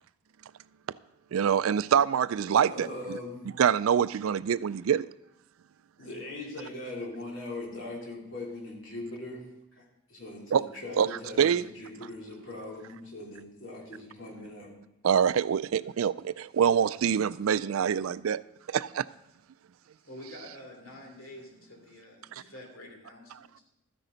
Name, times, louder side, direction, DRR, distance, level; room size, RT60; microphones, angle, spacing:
voice 1, 1.3-3.2 3.6-5.1 10.5-10.7 11.0-11.1 11.4-11.6 15.0-18.4 18.7-19.1, right 8 dB, 90° right, 0.4 m, -25 dB
voice 2, 2.6-3.5 6.0-9.4 9.7-9.8 10.1-14.7, left 2 dB, 65° left, 3.4 m, -40 dB
voice 3, 20.0-23.6, left 1 dB, 85° left, 3.1 m, -48 dB
13.0 x 10.0 x 3.9 m
head